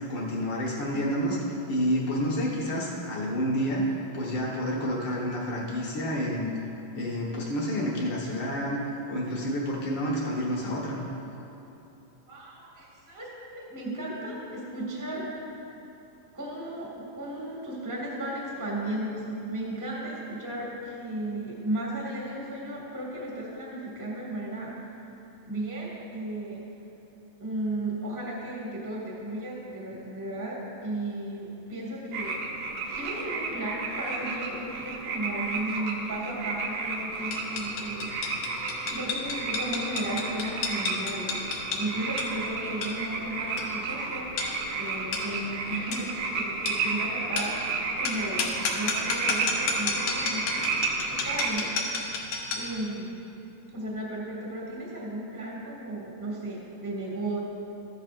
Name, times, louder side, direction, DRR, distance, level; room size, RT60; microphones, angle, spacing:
voice 1, 0.1-1.4 1.7-3.8 4.1-6.5 6.9-11.0, equal, 50° left, -4 dB, 1.5 m, -29 dB
voice 2, 12.3-15.5 16.3-24.7 25.5-26.6 27.4-32.4 32.9-38.1 38.9-44.3 44.8-50.7 51.1-51.7 52.5-53.1 53.7-57.4, right 1 dB, 10° right, -4 dB, 0.9 m, -35 dB
sound 1, 32.1-51.5, right 4 dB, 75° right, 2.5 m, -32 dB
sound 2, 37.3-52.8, left 4 dB, 70° left, 2.2 m, -33 dB
14.0 x 11.0 x 2.5 m, 2.9 s
omnidirectional pair, 3.8 m